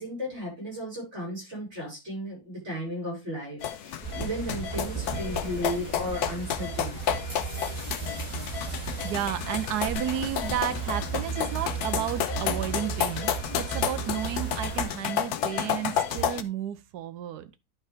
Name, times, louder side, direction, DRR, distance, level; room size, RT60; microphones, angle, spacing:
voice 1, 0.0-7.0, equal, 45° right, 5.8 m, -35 dB
sound 1, 3.6-16.4, left 9 dB, 80° left, 1.2 m, -31 dB
sound 2, 4.0-14.9, right 6 dB, 25° right, 6.4 m, -35 dB
voice 2, 9.0-17.5, right 10 dB, 85° right, 1.3 m, -32 dB
11.0 x 4.8 x 3.3 m
omnidirectional pair, 1.7 m